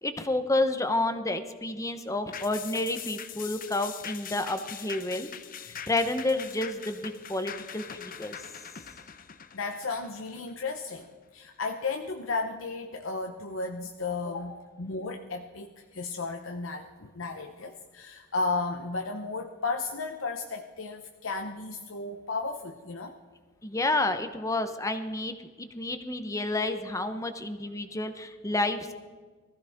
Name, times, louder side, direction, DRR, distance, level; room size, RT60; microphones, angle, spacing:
voice 1, 0.0-5.3 5.9-8.4 23.6-28.9, left 2 dB, 15° left, 9 dB, 0.9 m, -30 dB
sound 1, 2.3-11.0 11.4-11.5, left 8 dB, 45° left, 0.7 m, -43 dB
voice 2, 9.5-23.1, left 3 dB, 75° left, 4 dB, 0.8 m, -34 dB
19.5 x 15.0 x 3.6 m, 1.4 s
head